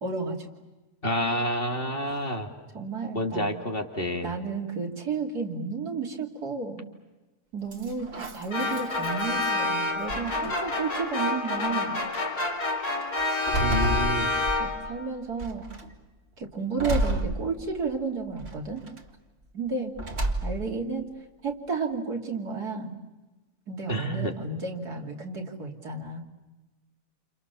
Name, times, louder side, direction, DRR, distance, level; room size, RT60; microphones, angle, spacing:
voice 1, 0.0-0.5 2.0-2.2 2.7-3.5 4.2-6.8 7.5-12.0 13.3-13.7 14.6-15.6 16.4-18.8 19.5-19.9 20.4-21.0 21.4-22.9 23.7-26.2, right 4 dB, 80° right, 1 dB, 3.4 m, -32 dB
voice 2, 1.0-2.5 3.1-4.3 13.6-14.3 23.9-24.3, equal, 35° left, 2 dB, 2.6 m, -29 dB
sound 1, 7.7-9.6 10.1-10.8 11.6-11.7 12.1-12.5 13.0-15.0 15.4-15.9 16.8-17.9 18.4-19.0 20.0-20.8, right 1 dB, 40° right, 2.2 m, -31 dB
sound 2, 8.5-15.0, left 2 dB, 70° left, 3.9 m, -28 dB
29.5 x 29.0 x 6.9 m, 1.1 s
omnidirectional pair, 1.6 m